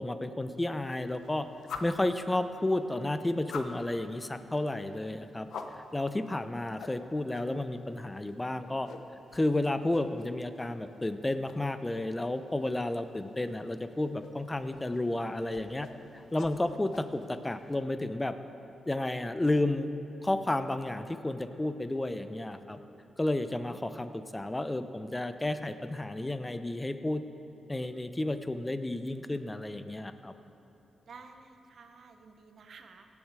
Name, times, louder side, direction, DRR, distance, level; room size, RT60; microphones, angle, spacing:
voice 1, 0.0-1.5 1.8-5.5 5.9-8.9 9.3-15.9 16.3-18.3 18.9-19.9 20.2-22.8 23.2-27.2 27.7-30.3, left 1 dB, 20° left, 10 dB, 0.7 m, -32 dB
sound 1, 0.7-17.8, left 5 dB, 75° left, 0.7 m, -49 dB
voice 2, 31.1-33.1, right 4 dB, 70° right, 6 dB, 0.9 m, -52 dB
18.0 x 7.1 x 4.8 m, 3.0 s
supercardioid pair, 50°, 0 cm